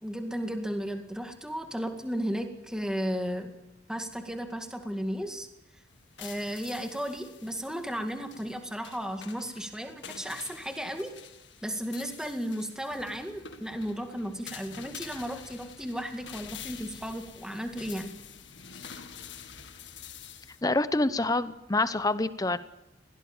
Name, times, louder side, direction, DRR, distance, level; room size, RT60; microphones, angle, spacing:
voice 1, 0.0-3.5 3.9-5.5 6.2-11.1 11.6-18.1, equal, 5° right, 5 dB, 2.0 m, -34 dB
sound 1, 5.9-20.6, left 7 dB, 90° left, 1.9 m, -47 dB
voice 2, 20.6-22.6, left 2 dB, 20° left, 13 dB, 0.8 m, -26 dB
21.0 x 17.5 x 7.2 m, 0.95 s
head